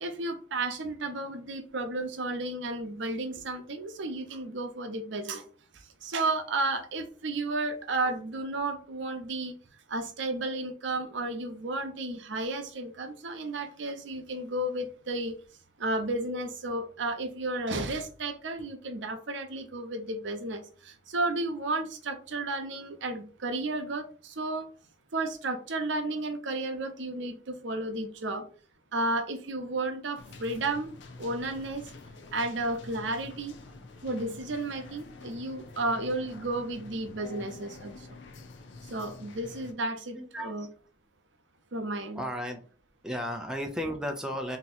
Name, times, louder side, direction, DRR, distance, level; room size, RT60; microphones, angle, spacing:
voice 1, 0.0-5.5 5.7-9.5 9.9-15.3 15.8-24.7 25.1-28.5 28.9-30.9 31.2-31.9 32.3-33.5 34.0-38.2 38.9-40.7 41.7-42.2, right 2 dB, 70° right, 6 dB, 0.7 m, -33 dB
sound 1, 30.2-39.7, left 3 dB, 65° left, 0.5 m, -47 dB
voice 2, 40.2-40.5 42.1-42.6 43.0-44.6, equal, 5° right, 3 dB, 0.4 m, -34 dB
2.9 x 2.8 x 3.9 m, 0.40 s
head